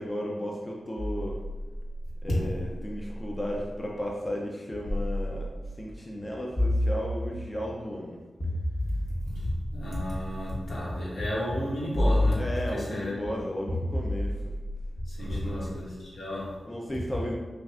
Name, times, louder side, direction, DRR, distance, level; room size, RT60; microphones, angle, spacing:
voice 1, 0.0-1.4 2.2-5.5 5.8-8.2 12.4-14.4 15.3-15.7 16.7-17.3, equal, 20° left, -2 dB, 0.4 m, -34 dB
sound 1, 1.0-3.7 4.8-5.9 6.6-7.7 8.4-10.7 11.9-13.0 13.7-15.8, left 1 dB, 40° left, 1.0 m, -31 dB
voice 2, 8.9-13.4 15.1-16.7, left 1 dB, 70° left, -7 dB, 1.4 m, -32 dB
5.7 x 2.4 x 2.4 m, 1.3 s
wide cardioid pair, 85°, 0 cm